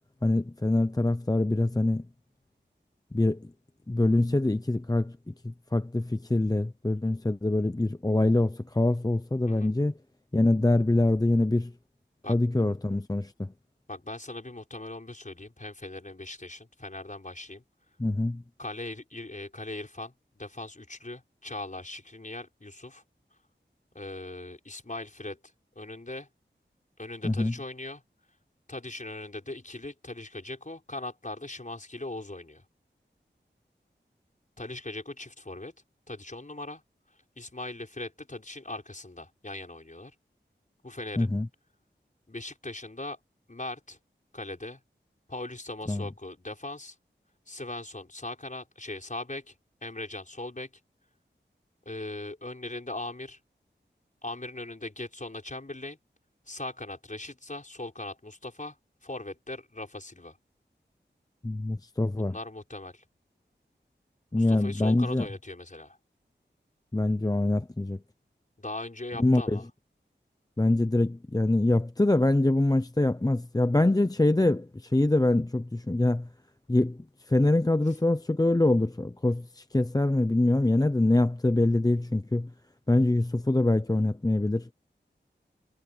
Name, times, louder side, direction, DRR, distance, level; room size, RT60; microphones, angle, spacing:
voice 1, 0.2-2.1 3.1-3.5 3.9-9.9 10.3-11.7 12.3-13.5 18.0-18.4 27.2-27.5 41.2-41.5 45.9-46.0 61.4-62.4 64.3-65.3 66.9-68.0 69.2-69.6 70.6-76.3 76.7-82.5 82.9-84.7, left 2 dB, 20° left, 0.7 m, -24 dB
voice 2, 13.9-17.6 18.6-23.0 23.9-25.4 25.8-26.3 27.0-28.0 28.7-32.6 34.6-35.7 36.1-36.8 37.4-40.1 40.8-41.3 42.3-43.2 43.5-44.0 44.3-44.8 45.3-47.0 47.5-49.5 49.8-50.7 51.9-53.4 54.2-56.0 56.5-58.8 59.0-60.4 62.2-63.0 64.3-66.0 68.6-69.7, left 2 dB, 40° left, 5.7 m, -39 dB
wide cardioid pair, 65°, 19 cm